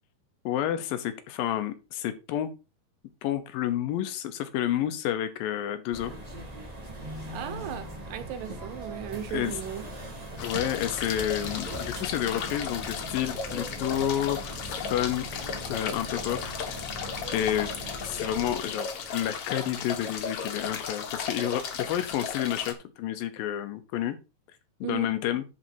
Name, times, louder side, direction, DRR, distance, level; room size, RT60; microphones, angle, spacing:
voice 1, 0.5-2.5 3.2-6.1 9.3-9.5 10.4-16.6 17.3-17.7 18.1-24.2 24.8-25.4, left 11 dB, 85° left, 2.8 m, -30 dB
sound 1, 5.9-18.6, right 1 dB, 35° right, 0.6 m, -40 dB
voice 2, 7.3-9.9 24.8-25.1, right 10 dB, 75° right, 2.6 m, -36 dB
sound 2, 10.4-22.7, left 6 dB, 60° left, 1.7 m, -35 dB
10.5 x 4.3 x 4.6 m
omnidirectional pair, 4.0 m